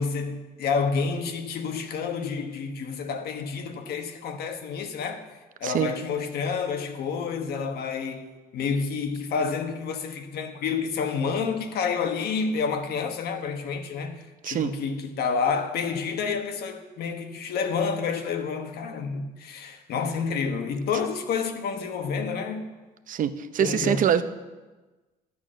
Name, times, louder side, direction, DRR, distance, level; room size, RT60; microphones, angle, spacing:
voice 1, 0.0-5.2 5.6-22.6 23.6-24.1, left 5 dB, 70° left, 1.3 m, -29 dB
voice 2, 5.6-5.9 14.4-14.7 23.1-24.2, right 9 dB, 50° right, 0.8 m, -24 dB
12.0 x 8.5 x 6.4 m
cardioid pair, 110°, 17 cm